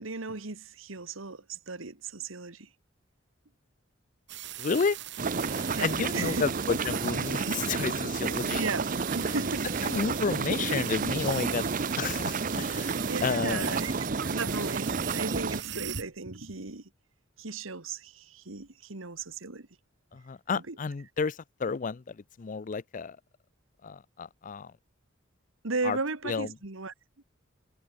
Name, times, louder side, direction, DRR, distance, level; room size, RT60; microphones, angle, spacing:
voice 1, 0.0-2.7 5.7-6.4 7.4-7.6 8.5-8.9 9.1-9.9 13.0-13.9 14.2-16.9 17.4-19.7 20.5-20.8 25.6-27.2, right 3 dB, 85° right, 1.9 m, -36 dB
sound 1, 4.3-16.0, right 14 dB, 60° right, 1.6 m, -40 dB
voice 2, 4.6-5.0 5.5-8.6 9.2-9.3 9.8-11.7 12.0-13.0 13.2-13.7 20.1-23.2 23.8-24.7 25.8-26.0 26.2-26.5, left 5 dB, 40° left, 0.5 m, -31 dB
sound 2, 5.2-15.6, right 4 dB, 45° right, 0.7 m, -31 dB
head